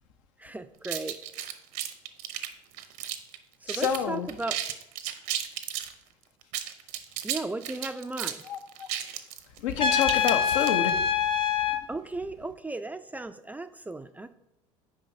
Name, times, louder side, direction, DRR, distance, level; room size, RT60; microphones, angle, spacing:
voice 1, 0.4-1.2 3.6-4.5 7.2-8.4 11.9-14.3, right 2 dB, 10° right, 10 dB, 0.3 m, -36 dB
sound 1, 0.8-3.4 3.7-4.0 4.3-5.9 6.4-11.0, right 11 dB, 65° right, 0.7 m, -34 dB
voice 2, 3.7-4.3 8.5-8.9 9.6-10.9, left 7 dB, 75° left, 8 dB, 0.7 m, -28 dB
Trumpet, 9.8-11.8, left 8 dB, 30° left, 0.7 m, -25 dB
9.3 x 4.9 x 2.7 m, 0.88 s
hypercardioid pair, 80°, 16 cm